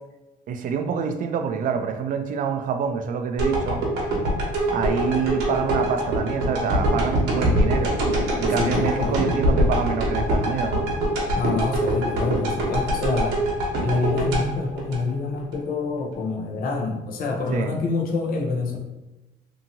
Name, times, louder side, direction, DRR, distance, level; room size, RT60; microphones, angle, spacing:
voice 1, 0.5-3.8 4.7-8.0 8.4-10.9 17.5-17.7, right 6 dB, 55° right, 6 dB, 0.4 m, -26 dB
sound 1, 3.4-15.6 16.0-16.1, right 1 dB, 85° right, 0.9 m, -23 dB
voice 2, 8.6-9.2 11.2-13.4 13.8-18.8, left 3 dB, 60° left, 1 dB, 0.7 m, -26 dB
2.8 x 2.6 x 2.6 m, 1.0 s
cardioid pair, 110°, 17 cm